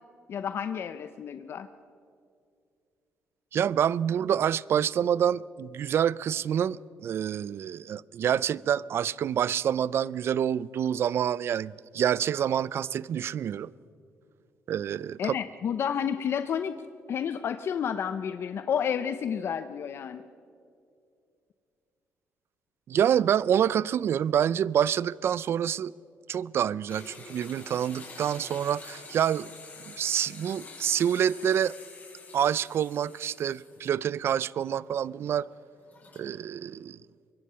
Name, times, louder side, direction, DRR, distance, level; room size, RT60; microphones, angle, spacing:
voice 1, 0.3-1.7 15.2-16.7 17.1-20.2, left 8 dB, 55° left, 0.7 m, -30 dB
voice 2, 3.5-13.7 14.7-15.3 22.9-25.9 26.3-29.5 29.9-31.7 32.3-35.5 36.2-37.0, right 9 dB, 55° right, 0.4 m, -27 dB
sound 1, 26.9-34.1 34.5-34.6 35.8-36.3, left 3 dB, 35° left, 7.3 m, -47 dB
24.5 x 22.0 x 5.6 m
cardioid pair, 120°, 5 cm